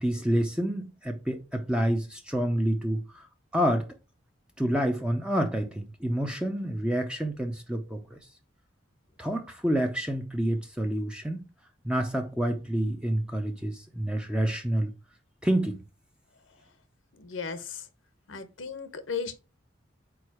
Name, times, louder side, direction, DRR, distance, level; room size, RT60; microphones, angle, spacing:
voice 1, 0.0-3.3 3.5-3.9 4.6-8.2 9.2-11.4 11.8-14.9 15.4-15.8, right 1 dB, 5° right, 0.5 m, -28 dB
voice 2, 17.1-17.9 18.3-19.3, left 5 dB, 85° left, 0.8 m, -36 dB
4.7 x 4.3 x 4.8 m
head